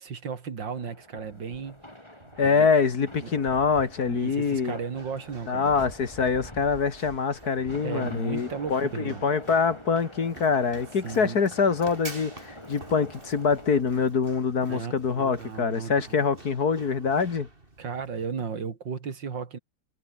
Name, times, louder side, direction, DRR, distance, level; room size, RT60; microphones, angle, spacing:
voice 1, 0.0-1.8 2.3-2.7 3.2-3.3 4.0-5.8 7.8-9.2 11.0-11.4 14.7-16.2 17.8-19.6, right 6 dB, 70° right, 2.9 m, -35 dB
sound 1, 0.6-13.8, left 1 dB, 15° left, 5.6 m, -45 dB
Run, 2.2-18.2, right 2 dB, 25° right, 3.6 m, -49 dB
voice 2, 2.4-4.8 5.5-17.5, left 5 dB, 55° left, 2.3 m, -25 dB
omnidirectional pair, 2.1 m